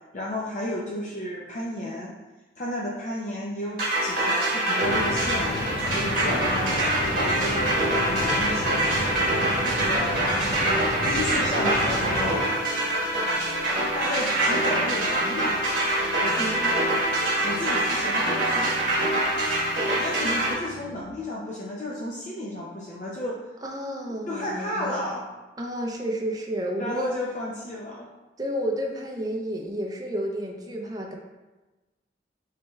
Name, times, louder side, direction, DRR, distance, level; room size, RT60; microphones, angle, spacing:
voice 1, 0.1-2.2 2.6-5.6 5.9-9.1 9.7-10.3 10.6-12.5 13.9-15.7 16.2-16.9 17.4-18.8 20.0-23.5 24.3-25.2 26.8-28.1, left 1 dB, 40° left, -4 dB, 0.5 m, -33 dB
sound 1, 3.8-20.5, right 1 dB, 55° right, 1.4 m, -25 dB
sound 2, 4.8-12.4, left 1 dB, 80° left, 0.7 m, -31 dB
sound 3, 5.0-21.0, left 1 dB, 80° right, 0.8 m, -43 dB
voice 2, 16.4-16.7 23.6-25.1 25.6-27.1 28.4-31.1, equal, 20° right, 0 dB, 0.5 m, -31 dB
7.0 x 3.3 x 2.3 m, 1.2 s
head